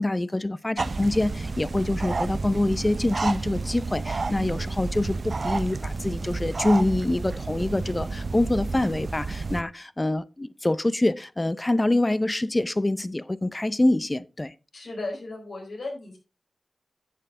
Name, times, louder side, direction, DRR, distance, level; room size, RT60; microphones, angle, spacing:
voice 1, 0.0-14.5, left 1 dB, 25° left, 0.6 m, -25 dB
sound 1, 0.8-9.6, right 3 dB, 60° right, 0.6 m, -30 dB
voice 2, 14.7-16.2, left 2 dB, 85° left, 4.3 m, -35 dB
11.0 x 7.8 x 3.7 m
cardioid pair, 55°, 0 cm